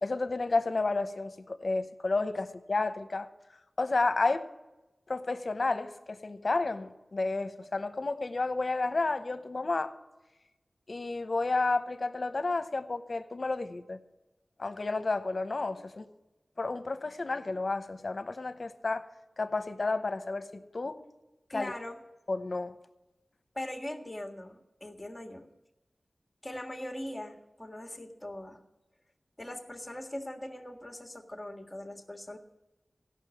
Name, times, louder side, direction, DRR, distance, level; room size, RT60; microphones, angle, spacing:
voice 1, 0.0-3.3 3.8-4.5 5.1-9.9 10.9-14.0 14.6-16.0 16.6-19.1 19.4-21.0 21.5-21.7 22.3-22.7, left 3 dB, 65° left, 11 dB, 0.9 m, -31 dB
voice 2, 21.5-22.0 23.5-25.5 26.4-28.6 29.4-32.4, left 1 dB, 20° left, 3 dB, 1.7 m, -41 dB
16.0 x 6.1 x 8.4 m, 1.0 s
wide cardioid pair, 55°, 0 cm